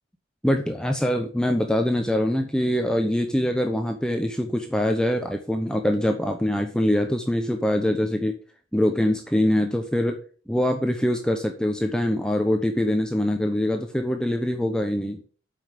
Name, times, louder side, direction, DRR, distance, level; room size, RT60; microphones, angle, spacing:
voice 1, 0.4-8.4 8.7-10.2 10.5-15.2, left 1 dB, 5° left, 4 dB, 0.9 m, -24 dB
8.4 x 5.7 x 7.6 m, 0.39 s
head